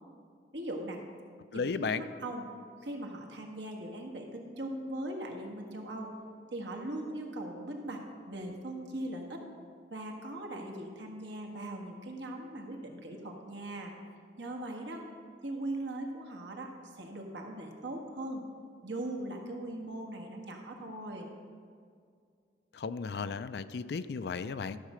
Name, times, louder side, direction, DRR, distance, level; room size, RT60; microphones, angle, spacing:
voice 1, 0.5-1.0 1.5-2.4 2.8-6.1 6.5-8.0 8.3-9.4 9.9-13.9 14.4-15.0 15.4-16.7 17.0-18.4 18.8-21.3, right 1 dB, 90° right, 1 dB, 1.5 m, -40 dB
voice 2, 1.5-2.0 22.7-24.8, left 5 dB, 65° left, 13 dB, 0.4 m, -34 dB
13.0 x 6.5 x 5.0 m, 2.2 s
head